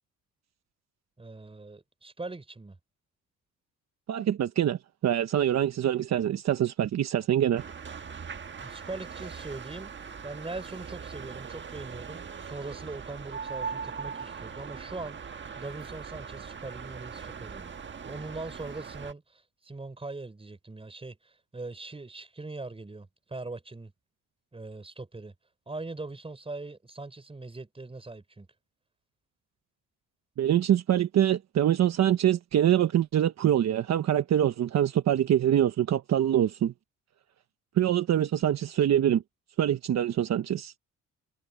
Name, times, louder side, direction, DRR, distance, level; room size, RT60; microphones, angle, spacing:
voice 1, 1.2-2.7 8.6-9.9 10.2-17.8 18.1-23.9 24.5-25.3 25.7-28.5, right 3 dB, 20° right, 4.8 m, -41 dB
voice 2, 4.1-7.6 30.4-36.7 37.8-39.2 39.6-40.7, right 10 dB, 60° right, 1.2 m, -24 dB
sound 1, 7.6-19.1, right 6 dB, 40° right, 1.5 m, -40 dB
cardioid pair, 90°, 30 cm